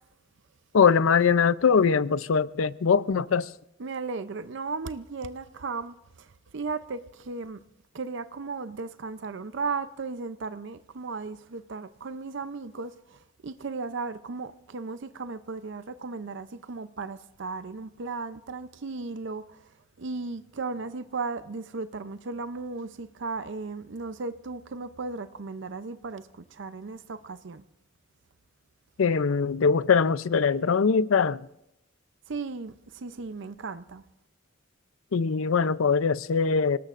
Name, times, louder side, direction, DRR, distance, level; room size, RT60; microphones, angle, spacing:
voice 1, 0.7-3.5 29.0-31.4 35.1-36.8, left 5 dB, 80° left, 0.5 m, -22 dB
voice 2, 3.8-6.3 6.5-7.6 7.9-19.7 20.0-27.6 32.3-34.0, right 4 dB, 60° right, 0.6 m, -36 dB
29.0 x 18.5 x 2.5 m
head